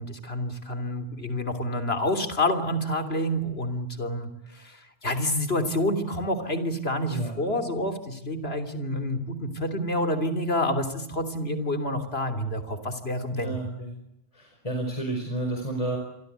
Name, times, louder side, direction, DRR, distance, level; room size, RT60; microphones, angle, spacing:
voice 1, 0.0-13.6, left 1 dB, 65° left, 9 dB, 3.5 m, -28 dB
voice 2, 7.0-7.4 13.3-13.9 14.3-16.0, right 1 dB, 30° left, 3 dB, 5.2 m, -31 dB
29.5 x 23.0 x 8.2 m, 0.81 s
omnidirectional pair, 1.1 m